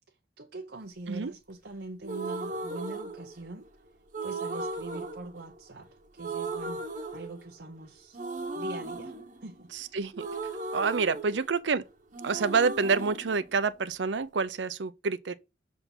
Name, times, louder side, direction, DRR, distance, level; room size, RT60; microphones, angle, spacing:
voice 1, 0.1-3.7 4.2-6.8 7.1-8.2 8.5-9.1 9.4-9.7, right 2 dB, 65° right, 0.9 m, -43 dB
sound 1, 2.0-3.7 4.1-5.9 6.2-7.8 8.1-11.8 12.1-14.2, right 3 dB, 45° right, 1.4 m, -37 dB
voice 2, 9.7-10.3 10.7-11.8 12.2-15.3, right 5 dB, 90° right, 0.6 m, -28 dB
7.0 x 3.8 x 5.4 m
head